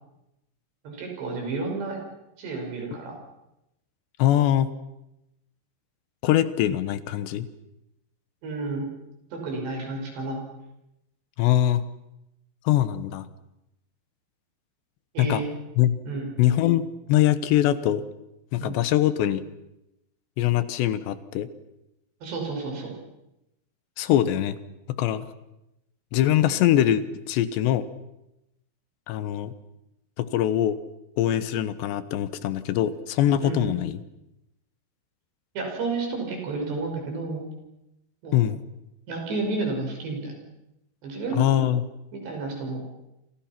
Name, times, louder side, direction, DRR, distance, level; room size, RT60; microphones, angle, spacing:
voice 1, 0.8-2.0 2.4-3.2 8.4-8.9 9.3-10.4 15.1-15.5 16.1-16.3 18.6-18.8 22.2-22.9 33.4-33.8 35.5-37.4 38.2-38.4 39.1-40.4 41.0-41.5 42.1-42.8, right 3 dB, 70° right, 2 dB, 8.0 m, -31 dB
voice 2, 4.2-4.7 6.2-7.5 11.4-11.8 12.7-13.3 15.2-15.4 15.8-16.0 16.4-18.0 18.5-19.4 20.4-21.5 24.0-24.6 24.9-25.2 26.1-27.9 29.1-29.5 30.2-30.8 31.2-34.0 38.3-38.6 41.3-41.8, left 12 dB, 80° left, 13 dB, 3.2 m, -22 dB
27.5 x 27.5 x 6.0 m, 0.89 s
omnidirectional pair, 5.1 m